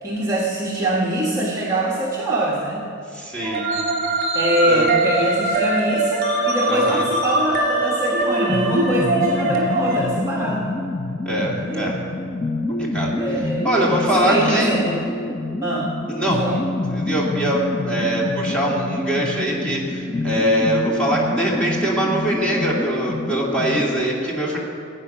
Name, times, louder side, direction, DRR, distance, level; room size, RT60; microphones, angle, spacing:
voice 1, 0.0-2.8 4.3-10.7 11.6-11.9 13.2-15.0 15.6-15.9 16.2-16.6, right 1 dB, 15° right, -5 dB, 1.3 m, -23 dB
voice 2, 3.1-3.6 4.7-4.9 6.7-7.1 11.3-12.0 12.7-13.1 13.6-14.7 16.1-16.6 16.9-24.6, right 1 dB, 5° left, -5 dB, 2.6 m, -23 dB
sound 1, 3.4-10.0, right 2 dB, 45° right, 2.7 m, -22 dB
sound 2, 8.5-24.0, left 2 dB, 25° left, 0.5 m, -26 dB
17.0 x 9.0 x 6.2 m, 2.5 s
head